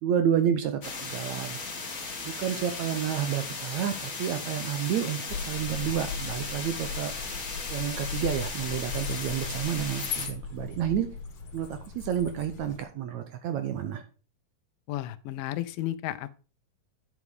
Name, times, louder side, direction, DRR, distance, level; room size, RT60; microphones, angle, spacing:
voice 1, 0.0-1.6 2.2-7.1 7.7-11.1 11.5-14.0, right 9 dB, 70° right, 8 dB, 1.8 m, -30 dB
sound 1, 0.8-10.3, left 4 dB, 35° left, 1.5 m, -37 dB
sound 2, 5.3-12.8, left 5 dB, 55° left, 2.3 m, -38 dB
voice 2, 14.9-16.4, left 14 dB, 85° left, 13 dB, 2.3 m, -33 dB
9.4 x 6.0 x 4.9 m, 0.35 s
omnidirectional pair, 3.9 m